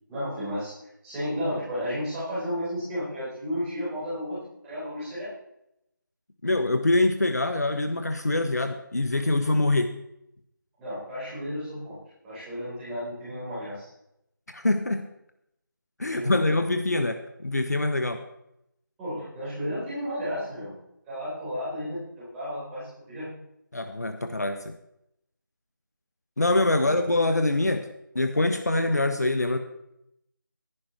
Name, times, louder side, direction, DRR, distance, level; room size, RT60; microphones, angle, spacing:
voice 1, 0.1-0.7 1.0-5.3 10.8-12.0 12.2-13.9 16.0-16.6 19.0-20.8 21.1-23.3 26.7-27.4, equal, 5° right, -12 dB, 4.1 m, -33 dB
voice 2, 6.4-9.9 14.5-15.1 16.0-18.2 23.7-24.7 26.4-27.9 28.1-29.6, left 2 dB, 50° left, 7 dB, 1.0 m, -24 dB
19.0 x 11.0 x 3.2 m, 0.82 s
figure-of-eight pair, 165°, 11 cm